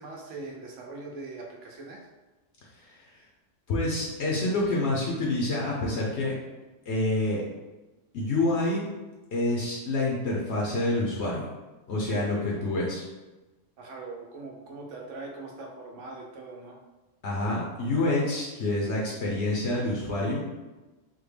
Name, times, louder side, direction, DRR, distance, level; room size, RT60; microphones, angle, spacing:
voice 1, 0.0-2.1 12.0-12.3 13.8-16.8, right 3 dB, 75° right, 0 dB, 1.0 m, -41 dB
voice 2, 3.7-6.4 6.9-7.4 8.1-8.8 9.3-11.5 11.9-13.0 17.2-20.4, left 2 dB, 65° left, -4 dB, 0.9 m, -27 dB
3.5 x 2.1 x 3.2 m, 1.1 s
omnidirectional pair, 1.3 m